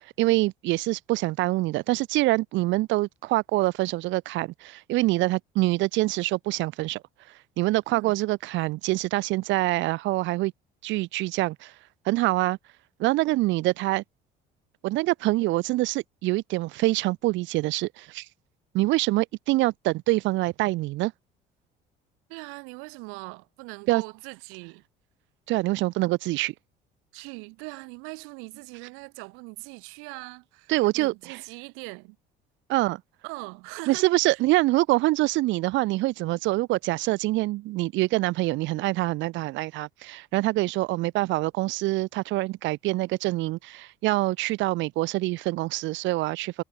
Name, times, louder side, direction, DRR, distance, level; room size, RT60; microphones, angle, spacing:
voice 1, 0.2-7.0 7.6-10.5 10.8-11.7 12.1-12.6 13.0-14.0 14.8-18.3 18.7-21.1 23.9-24.0 25.5-26.5 30.7-31.4 32.7-33.0 33.9-46.6, right 19 dB, 65° right, 0.5 m, -25 dB
voice 2, 22.3-24.8 27.1-32.2 33.2-34.4, right 30 dB, 80° right, 3.5 m, -41 dB
supercardioid pair, 75°, 21 cm